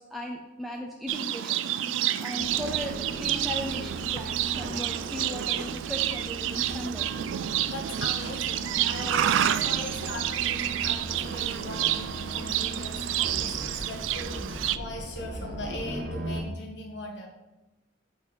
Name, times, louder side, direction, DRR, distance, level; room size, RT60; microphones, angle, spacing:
voice 1, 0.0-1.5 2.2-7.1, equal, ahead, -1 dB, 0.4 m, -37 dB
Livestock farm animals working animals, 1.1-14.8, right 11 dB, 80° right, 0.3 m, -29 dB
sound 1, 2.4-16.4, right 1 dB, 50° right, 1.0 m, -39 dB
voice 2, 7.4-17.3, left 1 dB, 65° left, 0 dB, 1.3 m, -40 dB
8.0 x 3.1 x 4.9 m, 1.0 s
head